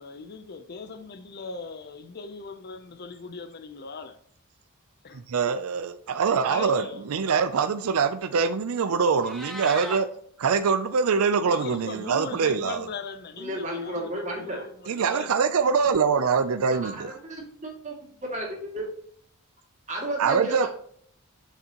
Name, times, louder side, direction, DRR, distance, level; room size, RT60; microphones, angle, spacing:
voice 1, 0.0-4.2 5.0-5.2 6.5-7.1 11.4-15.4, left 4 dB, 45° left, 0.6 m, -39 dB
voice 2, 5.3-10.1 10.4-12.8 14.9-16.9 20.2-20.7, right 5 dB, 75° right, 0.5 m, -24 dB
Meow, 9.1-10.0, equal, ahead, 1.2 m, -37 dB
voice 3, 13.4-14.7 16.7-17.0 17.4-18.0 18.3-18.9 19.9-20.7, right 1 dB, 35° right, 2.4 m, -33 dB
6.8 x 6.0 x 2.9 m
head